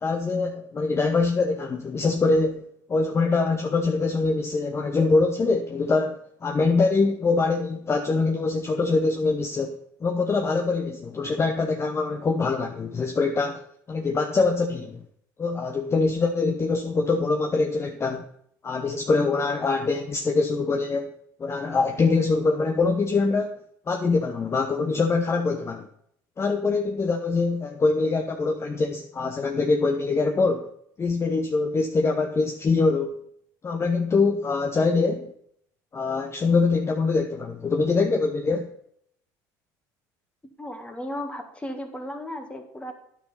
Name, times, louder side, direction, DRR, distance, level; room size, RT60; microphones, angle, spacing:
voice 1, 0.0-2.6 2.9-13.6 13.9-15.0 15.4-18.2 18.6-21.1 21.4-23.5 23.9-25.9 26.4-30.7 31.0-33.2 33.6-35.3 35.9-38.7, left 3 dB, 25° left, 4 dB, 0.9 m, -24 dB
voice 2, 40.6-42.9, left 1 dB, 10° left, 5 dB, 1.9 m, -35 dB
9.5 x 5.8 x 5.6 m, 0.69 s
supercardioid pair, 85°, 10 cm